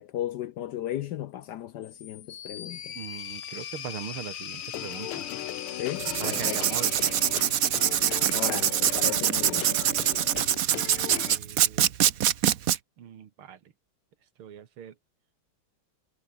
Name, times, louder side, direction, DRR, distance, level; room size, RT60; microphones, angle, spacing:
voice 1, 0.0-2.9 5.8-6.6 8.3-9.7, left 12 dB, 70° left, 1.0 m, -35 dB
sound 1, 1.8-8.0, left 9 dB, 50° left, 1.2 m, -40 dB
voice 2, 3.0-5.3 6.2-7.8 11.0-11.9 13.0-13.6 14.4-15.0, right 9 dB, 85° right, 2.4 m, -41 dB
sound 2, 4.6-11.4, left 14 dB, 85° left, 1.7 m, -38 dB
Writing, 6.0-12.8, right 10 dB, 55° right, 1.0 m, -24 dB
omnidirectional pair, 2.3 m